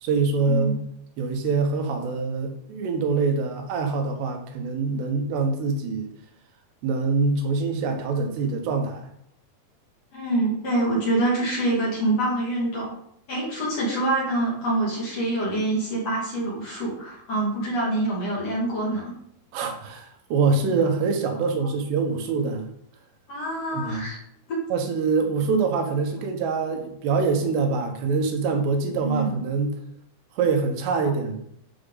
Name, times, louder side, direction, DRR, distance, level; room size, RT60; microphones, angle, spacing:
voice 1, 0.0-0.8 1.2-6.1 6.8-9.1 19.5-22.6 23.7-24.1 24.7-29.8 30.4-31.4, right 4 dB, 85° right, 4 dB, 3.4 m, -24 dB
voice 2, 10.1-12.9 13.3-19.1 23.3-24.2 24.5-24.6 29.0-29.3, right 2 dB, 45° left, -5 dB, 3.2 m, -25 dB
11.5 x 5.1 x 4.0 m, 0.72 s
omnidirectional pair, 4.7 m